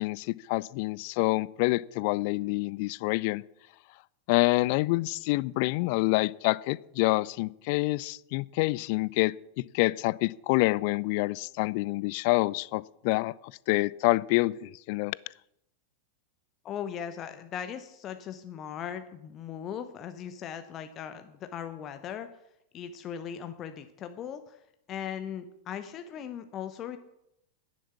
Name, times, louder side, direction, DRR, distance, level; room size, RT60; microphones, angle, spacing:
voice 1, 0.0-3.4 4.3-13.3 13.7-15.2, left 22 dB, 45° left, 22 dB, 0.3 m, -27 dB
voice 2, 16.6-22.3 22.7-24.6 24.9-27.0, left 9 dB, 30° left, 9 dB, 0.8 m, -38 dB
11.0 x 10.0 x 5.9 m, 0.80 s
figure-of-eight pair, 90°, 0 cm